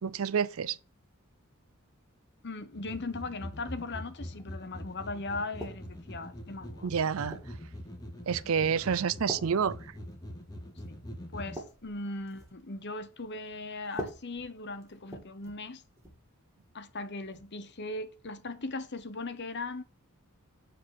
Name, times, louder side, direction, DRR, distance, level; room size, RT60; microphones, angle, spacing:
voice 1, 0.0-0.8 6.8-7.4 8.3-9.8, right 7 dB, 65° right, 0.5 m, -28 dB
voice 2, 2.4-6.9 10.9-11.0 11.3-15.8 16.7-19.8, left 2 dB, 50° left, 1.0 m, -38 dB
sound 1, 2.7-11.6, equal, 15° left, 1.6 m, -44 dB
sound 2, 5.6-6.1 6.8-7.6 8.3-8.5 9.3-10.5 10.8-10.9 11.3-12.6 13.8-15.7 16.0-16.2 17.3-17.5, equal, 15° right, 2.3 m, -44 dB
7.6 x 4.9 x 6.1 m
head